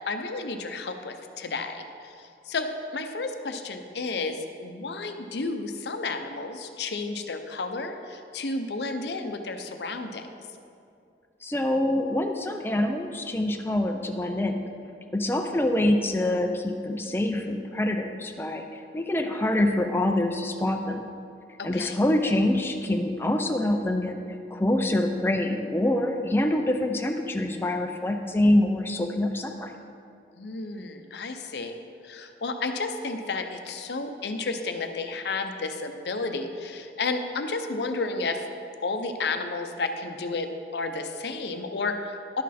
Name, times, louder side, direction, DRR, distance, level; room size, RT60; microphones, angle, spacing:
voice 1, 0.1-10.2 21.6-22.0 30.4-38.5 38.8-42.4, left 3 dB, 75° left, 7 dB, 0.6 m, -32 dB
voice 2, 11.4-14.7 15.1-21.1 21.6-24.2 24.5-29.7, left 1 dB, 15° left, 4 dB, 0.4 m, -25 dB
11.5 x 6.2 x 4.2 m, 2.5 s
head